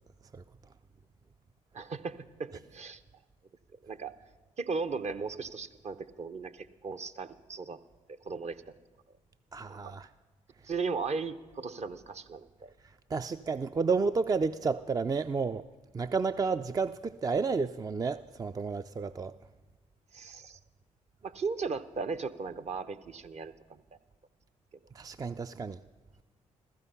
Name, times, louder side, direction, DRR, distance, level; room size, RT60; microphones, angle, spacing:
voice 1, 1.7-3.0 3.8-4.1 4.6-7.8 8.2-8.7 9.7-9.9 10.6-12.7 20.1-20.6 21.2-23.8, right 4 dB, 45° right, 0.8 m, -37 dB
voice 2, 9.5-10.1 12.8-15.7 15.9-19.3 24.9-25.8, right 4 dB, 25° right, 0.4 m, -31 dB
15.0 x 14.5 x 5.5 m
hypercardioid pair, 50°, 16 cm